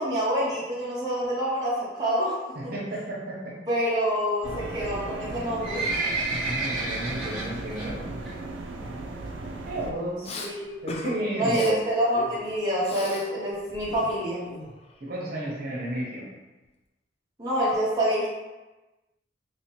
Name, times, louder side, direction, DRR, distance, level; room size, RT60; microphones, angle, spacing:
voice 1, 0.0-2.4 3.7-5.8 10.4-10.8 11.4-14.4 17.4-18.3, equal, 20° right, -8 dB, 0.7 m, -26 dB
voice 2, 2.5-3.6 6.3-8.0 9.6-10.3 10.8-11.8 15.0-16.2, right 1 dB, 50° right, -5 dB, 0.9 m, -32 dB
sound 1, 4.4-9.9, right 2 dB, 75° right, 0.4 m, -37 dB
Livestock farm animals working animals, 5.2-7.9 8.2-8.5 8.8-8.9 9.6-9.7 10.0-10.1 10.3-10.4 10.9-11.2 11.7-11.8 12.1-12.2 12.3-12.4 12.6-12.7 13.2-13.3 13.8-13.9 14.3-14.4, right 3 dB, 5° left, 1.1 m, -30 dB
Respiratory sounds, 10.2-10.5 10.9-11.1 11.4-11.7 12.1-13.3 13.6-15.0, left 2 dB, 35° left, 0.3 m, -38 dB
3.1 x 2.8 x 3.0 m, 1.1 s
head